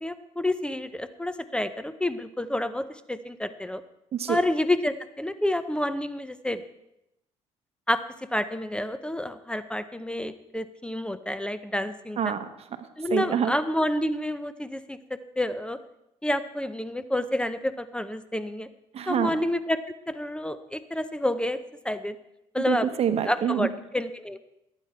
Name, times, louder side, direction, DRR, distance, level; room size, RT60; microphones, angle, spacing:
voice 1, 0.0-3.8 4.3-6.6 7.9-8.0 8.3-12.2 13.0-15.8 16.2-18.7 19.1-19.8 20.1-21.6 21.8-22.2 22.5-22.9 23.2-23.7 23.9-24.4, left 1 dB, 10° left, 12 dB, 0.7 m, -29 dB
voice 2, 12.2-13.5 18.9-19.3 22.6-23.7, right 8 dB, 55° right, 9 dB, 1.0 m, -27 dB
18.5 x 9.1 x 4.4 m, 0.86 s
cardioid pair, 90°, 13 cm